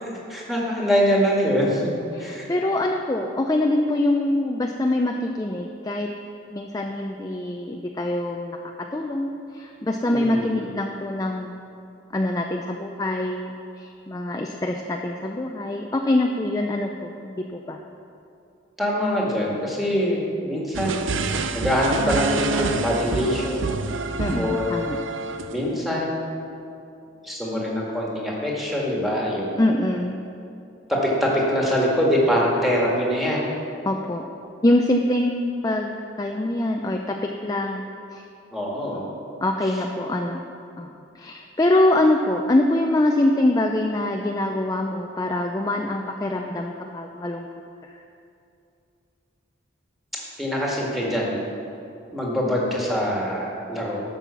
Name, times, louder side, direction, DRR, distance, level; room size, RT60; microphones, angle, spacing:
voice 1, 0.0-1.9 2.2-2.5 10.1-10.5 18.8-21.1 21.5-23.8 24.3-24.8 25.5-26.2 27.2-29.6 30.9-33.5 38.5-39.1 50.4-51.4 52.1-54.0, equal, ahead, -4 dB, 1.8 m, -24 dB
voice 2, 2.1-6.1 6.5-11.5 12.1-17.8 24.2-25.0 29.6-30.2 33.8-34.3 34.6-38.2 39.4-40.4 40.8-47.5 47.8-48.0, left 1 dB, 20° left, 2 dB, 0.4 m, -24 dB
sound 1, 20.7-25.7, right 4 dB, 75° right, 0.6 m, -28 dB
12.0 x 5.6 x 7.0 m, 2.6 s
head